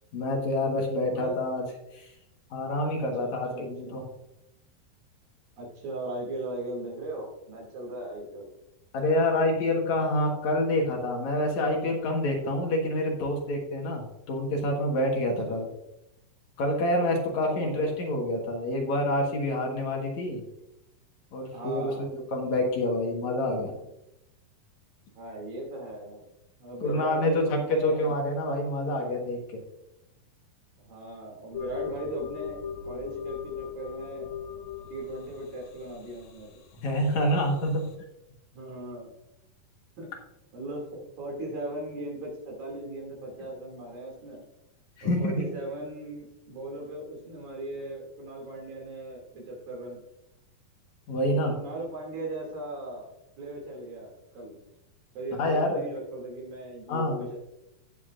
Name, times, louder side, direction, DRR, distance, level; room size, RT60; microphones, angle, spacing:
voice 1, 0.1-1.6 1.9-2.1 2.5-4.0 8.9-15.7 16.6-20.4 21.3-23.7 26.8-29.6 36.8-37.9 45.0-45.6 51.1-51.6 55.4-55.9 56.9-57.3, left 1 dB, 60° left, 1 dB, 2.5 m, -27 dB
voice 2, 1.1-1.5 3.0-4.0 5.6-8.5 15.4-15.7 17.5-17.9 21.5-22.2 25.1-26.2 26.6-28.2 30.8-34.3 34.9-36.6 38.5-39.1 40.0-40.1 40.5-44.4 45.0-50.0 51.5-53.1 53.4-54.6 55.2-57.4, right 2 dB, 70° right, -2 dB, 4.3 m, -38 dB
sound 1, 31.5-37.9, left 8 dB, 85° left, 2.9 m, -40 dB
18.0 x 7.4 x 2.5 m, 0.86 s
omnidirectional pair, 4.2 m